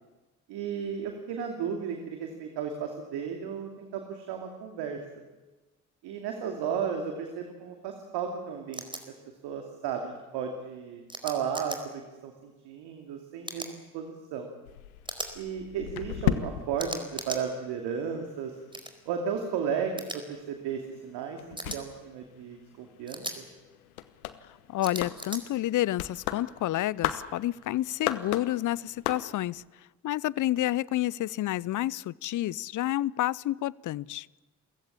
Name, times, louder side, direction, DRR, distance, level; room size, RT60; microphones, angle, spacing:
voice 1, 0.5-5.0 6.0-8.8 9.4-14.5 15.4-18.5 19.1-23.4, right 7 dB, 65° right, 3 dB, 2.7 m, -34 dB
sound 1, 8.7-9.0 11.1-11.8 13.4-13.7 15.1-15.3 16.8-17.4 18.7-18.9 20.0-20.2 21.6-21.8 23.1-23.4 24.8-25.4, right 1 dB, 10° right, 4.4 m, -37 dB
sound 2, 14.6-18.1 18.4-29.6, left 12 dB, 85° left, 1.1 m, -37 dB
voice 2, 24.7-29.6 30.0-34.3, left 14 dB, 45° left, 25 dB, 0.7 m, -29 dB
29.5 x 15.5 x 8.7 m, 1.2 s
hypercardioid pair, 45°, 42 cm